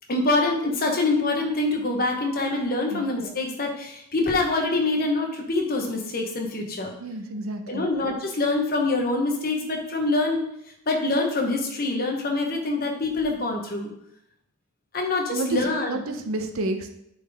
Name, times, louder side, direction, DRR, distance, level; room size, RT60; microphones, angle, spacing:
voice 1, 0.1-6.9 7.7-10.4 10.9-13.9 14.9-15.9, left 2 dB, 40° left, 2 dB, 1.0 m, -25 dB
voice 2, 7.0-7.9 15.3-16.9, right 2 dB, 65° right, 6 dB, 0.7 m, -30 dB
8.4 x 4.0 x 3.4 m, 0.77 s
head